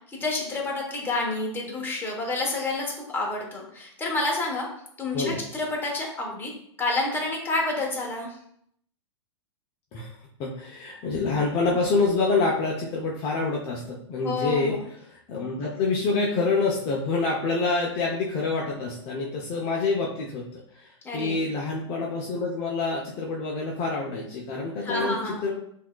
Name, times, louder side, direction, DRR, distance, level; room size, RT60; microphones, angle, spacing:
voice 1, 0.1-4.7 5.0-6.5 6.8-8.3 14.2-14.8 21.0-21.4 24.8-25.4, left 2 dB, 15° left, -2 dB, 1.1 m, -29 dB
voice 2, 10.4-14.8 15.3-20.8 21.1-25.5, left 3 dB, 35° left, -3 dB, 0.7 m, -27 dB
5.8 x 2.8 x 2.3 m, 0.68 s
hypercardioid pair, 120°, 15 cm